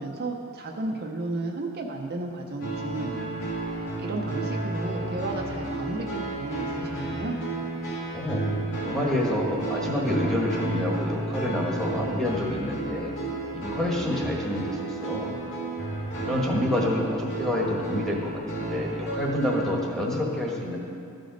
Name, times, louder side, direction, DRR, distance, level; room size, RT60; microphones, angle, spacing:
voice 1, 0.0-3.3 4.0-7.4, right 2 dB, 45° right, 1 dB, 0.6 m, -33 dB
sound 1, 2.6-19.8, right 2 dB, 60° left, 1.7 m, -32 dB
voice 2, 8.1-8.5 8.8-13.1 13.5-15.4 16.2-20.8, left 1 dB, ahead, -3 dB, 1.2 m, -28 dB
13.5 x 5.1 x 3.9 m, 2.4 s
head